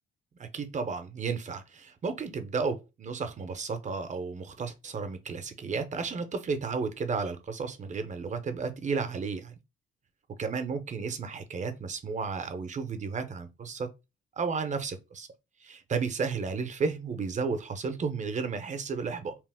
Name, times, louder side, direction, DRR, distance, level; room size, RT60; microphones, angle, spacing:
voice 1, 0.4-9.5 10.4-13.9 14.4-15.3 15.6-19.3, right 5 dB, 35° right, 0.6 m, -33 dB
2.9 x 2.0 x 3.3 m
cardioid pair, 90°, 20 cm